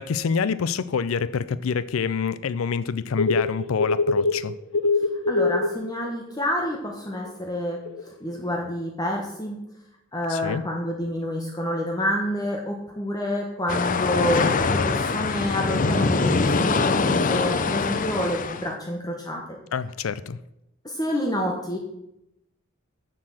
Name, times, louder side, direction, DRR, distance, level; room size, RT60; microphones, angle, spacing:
voice 1, 0.0-4.5 10.3-10.6 19.7-20.4, left 6 dB, 90° left, 16 dB, 0.5 m, -27 dB
sound 1, 3.2-4.4 4.7-5.7 7.1-7.3 7.9-8.0, left 3 dB, 65° left, 0.9 m, -22 dB
voice 2, 5.3-7.8 8.2-9.6 10.1-19.4 20.8-21.8, left 1 dB, 20° left, 0 dB, 1.2 m, -28 dB
sound 2, 13.7-18.7, left 4 dB, 40° left, 0.5 m, -23 dB
7.4 x 6.9 x 7.6 m, 0.85 s
head